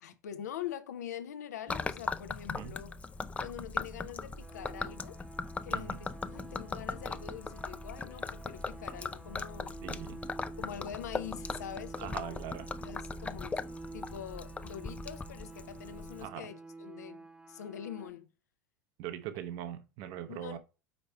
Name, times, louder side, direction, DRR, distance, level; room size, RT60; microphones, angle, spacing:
voice 1, 0.0-2.9 3.4-5.2 5.6-9.8 10.6-12.4 12.8-13.6 13.9-18.3 20.3-20.6, left 9 dB, 80° left, 0.6 m, -44 dB
Gurgling / Liquid, 1.7-16.3, left 3 dB, 15° left, 0.4 m, -39 dB
sound 1, 4.4-18.1, right 3 dB, 10° right, 0.9 m, -49 dB
voice 2, 5.7-6.0 9.8-10.2 12.0-12.7 16.2-16.5 19.0-20.6, right 11 dB, 55° right, 0.7 m, -41 dB
5.2 x 4.2 x 4.3 m
hypercardioid pair, 80°, 9 cm